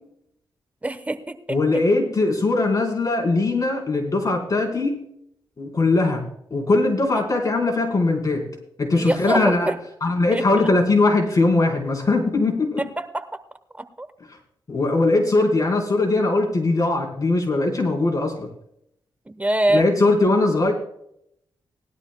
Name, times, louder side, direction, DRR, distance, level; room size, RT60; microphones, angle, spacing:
voice 1, 0.8-1.8 9.0-9.8 10.3-10.4 13.0-13.2 13.8-14.1 19.3-19.9, right 1 dB, 15° right, 11 dB, 1.0 m, -24 dB
voice 2, 1.5-5.0 5.6-6.2 6.5-8.4 8.8-9.7 10.0-12.8 14.7-18.5 19.7-20.7, left 2 dB, 40° left, 0 dB, 4.1 m, -20 dB
19.5 x 12.0 x 2.2 m, 0.73 s
cardioid pair, 80°, 9 cm